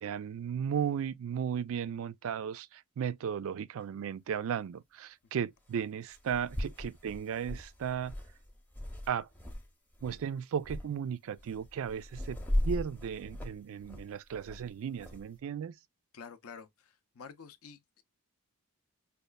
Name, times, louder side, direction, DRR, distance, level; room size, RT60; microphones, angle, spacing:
voice 1, 0.0-8.1 9.1-9.3 10.0-12.4 12.6-15.7, right 8 dB, 65° right, 0.3 m, -35 dB
sound 1, 3.8-3.9 5.7-5.8 6.1-9.7 9.9-10.2 10.6-10.9 11.4-15.2, left 1 dB, 10° left, 0.6 m, -38 dB
voice 2, 16.1-18.0, left 6 dB, 65° left, 0.5 m, -49 dB
5.2 x 2.3 x 2.2 m
head